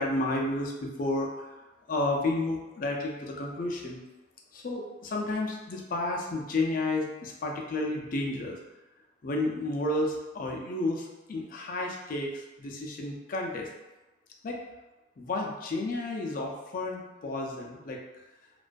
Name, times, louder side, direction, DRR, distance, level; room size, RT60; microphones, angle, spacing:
voice 1, 0.0-1.6 1.9-4.0 4.5-8.6 9.2-13.7 14.4-14.6 15.2-18.0, left 2 dB, 45° left, 0 dB, 0.3 m, -31 dB
2.3 x 2.2 x 2.4 m, 1.1 s
head